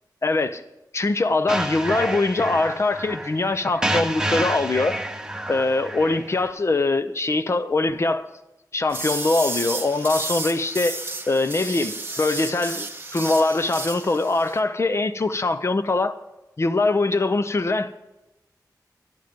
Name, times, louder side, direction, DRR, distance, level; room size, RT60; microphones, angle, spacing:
voice 1, 0.2-0.6 0.9-5.0 5.5-8.3 8.7-11.0 11.3-16.2 16.6-18.0, left 2 dB, 40° left, 10 dB, 0.6 m, -22 dB
sound 1, 1.5-6.5, right 1 dB, 10° right, 0.8 m, -29 dB
sound 2, 8.9-14.6, right 2 dB, 30° right, 1.4 m, -32 dB
11.5 x 10.5 x 5.2 m, 0.98 s
wide cardioid pair, 90°, 7 cm